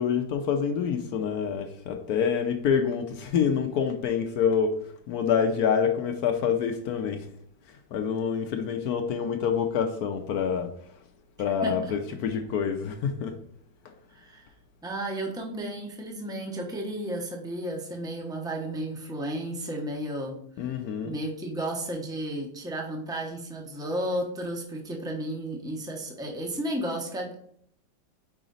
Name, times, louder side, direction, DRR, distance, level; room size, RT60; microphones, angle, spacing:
voice 1, 0.0-7.3 7.7-10.7 11.4-13.4 13.8-13.9 20.6-21.2, left 7 dB, 70° left, 0.9 m, -27 dB
voice 2, 11.6-11.9 14.1-14.5 14.8-20.7 21.0-27.3, right 1 dB, 5° right, 0.5 m, -33 dB
5.0 x 4.9 x 3.9 m
omnidirectional pair, 2.1 m